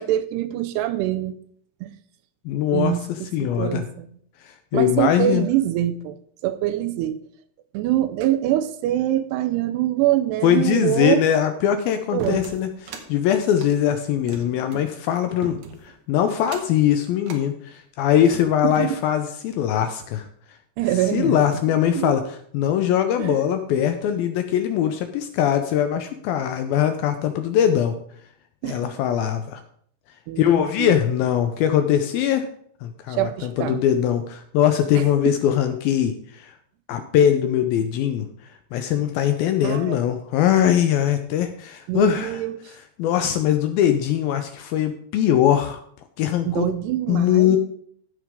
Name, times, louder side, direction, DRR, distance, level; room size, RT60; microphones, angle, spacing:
voice 1, 0.0-1.3 1.8-1.9 2.7-4.1 4.7-6.2 6.4-7.2 7.7-11.2 12.1-12.4 18.6-19.0 20.8-21.4 21.9-22.2 23.2-23.4 28.6-29.1 30.3-31.0 33.1-33.8 35.0-35.3 39.6-40.0 41.9-42.6 46.5-47.6, right 13 dB, 85° right, 11 dB, 2.6 m, -24 dB
voice 2, 2.5-3.8 4.5-5.5 10.4-20.3 21.1-28.0 28.6-29.6 30.4-32.5 32.8-36.5 36.9-38.3 38.7-42.4 43.0-45.8 46.2-46.7 47.1-47.6, left 10 dB, 80° left, 8 dB, 2.2 m, -21 dB
sound 1, 12.2-13.1 13.5-14.9 15.4-15.9 16.4-16.8 17.2-17.4 18.0-18.9, right 4 dB, 70° right, 1.9 m, -38 dB
15.5 x 6.2 x 3.6 m, 0.62 s
omnidirectional pair, 4.8 m